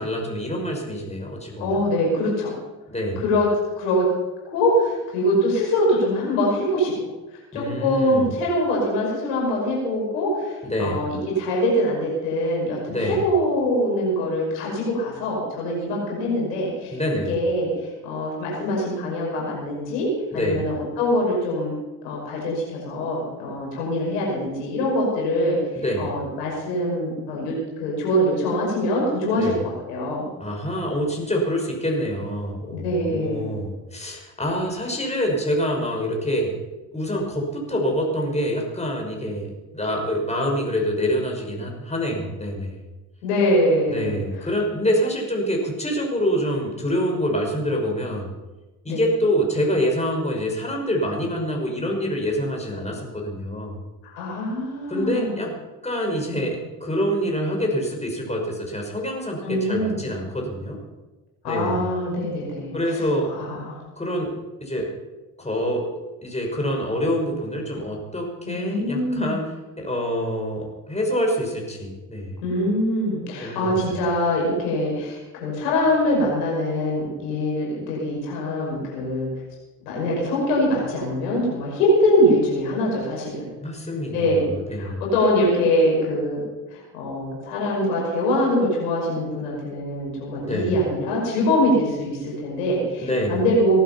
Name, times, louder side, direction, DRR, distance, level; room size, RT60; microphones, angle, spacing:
voice 1, 0.0-1.8 2.9-3.2 7.5-8.3 10.6-11.1 12.9-13.2 16.9-17.4 20.3-20.7 25.7-26.1 29.4-29.6 30.4-36.5 36.9-42.8 43.9-48.3 48.8-53.7 54.9-55.5 55.8-60.8 61.4-61.8 62.7-63.3 64.0-64.9 65.4-65.9 66.2-72.4 73.4-74.0 83.6-85.0 90.3-90.7 93.0-93.4, equal, 15° left, 0 dB, 6.1 m, -26 dB
voice 2, 1.6-2.5 3.2-3.5 3.8-4.1 4.4-6.9 7.5-17.0 17.3-21.7 22.0-30.3 32.7-33.5 43.2-44.5 48.9-49.0 54.0-55.4 59.4-60.0 61.4-63.0 63.3-63.8 68.5-69.4 72.4-79.3 79.8-83.5 84.1-84.4 84.7-86.4 86.7-93.8, left 1 dB, 85° left, -3 dB, 5.8 m, -23 dB
19.0 x 11.5 x 5.8 m, 1.1 s
hypercardioid pair, 55°, 47 cm